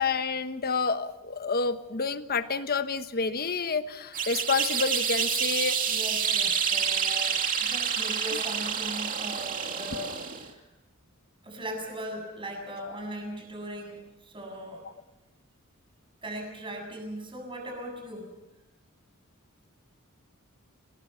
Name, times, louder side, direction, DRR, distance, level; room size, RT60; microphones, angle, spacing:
voice 1, 0.0-5.9, left 4 dB, 45° left, 10 dB, 1.2 m, -29 dB
sound 1, 4.1-10.5, right 7 dB, 40° right, 2.4 m, -28 dB
voice 2, 5.9-10.6 11.4-14.8 16.2-18.3, equal, 25° right, 3 dB, 7.4 m, -39 dB
29.0 x 21.0 x 5.8 m, 0.98 s
head